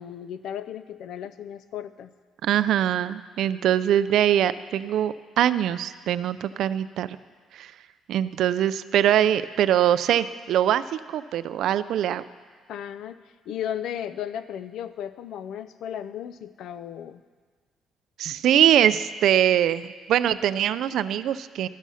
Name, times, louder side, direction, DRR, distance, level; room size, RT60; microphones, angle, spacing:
voice 1, 0.0-2.1 12.7-13.2 13.5-17.2, left 9 dB, 75° left, 13 dB, 0.4 m, -35 dB
voice 2, 2.4-7.2 7.5-7.7 8.1-12.2 18.2-21.7, right 10 dB, 70° right, 14 dB, 0.3 m, -23 dB
13.0 x 6.1 x 5.6 m, 1.5 s
cardioid pair, 130°, 0 cm